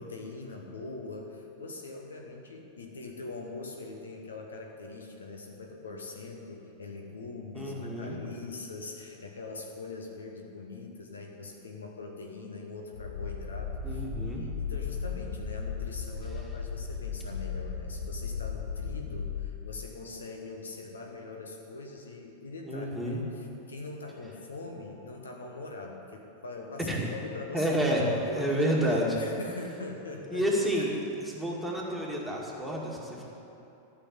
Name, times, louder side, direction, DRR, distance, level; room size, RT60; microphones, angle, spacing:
voice 1, 0.0-27.7 28.1-30.8, left 3 dB, 70° left, 2 dB, 1.3 m, -42 dB
voice 2, 7.5-8.2 13.8-14.4 22.6-23.2 26.8-27.1 27.5-28.1 28.3-29.1 30.3-30.9 31.3-33.2, equal, ahead, -4 dB, 2.1 m, -29 dB
sound 1, 12.9-19.5, left 6 dB, 55° left, 1.3 m, -36 dB
13.5 x 6.1 x 8.1 m, 2.8 s
figure-of-eight pair, 90°, 0 cm